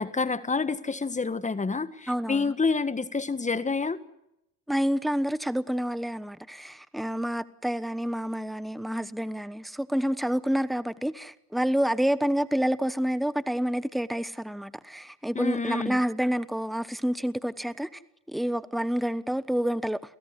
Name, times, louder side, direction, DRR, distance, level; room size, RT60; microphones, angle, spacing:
voice 1, 0.0-4.0 15.3-16.0, left 4 dB, 15° left, 1.6 m, -28 dB
voice 2, 2.1-2.4 4.7-17.9 18.3-20.0, equal, ahead, 1.1 m, -28 dB
29.5 x 16.5 x 8.2 m
supercardioid pair, 90°, 43 cm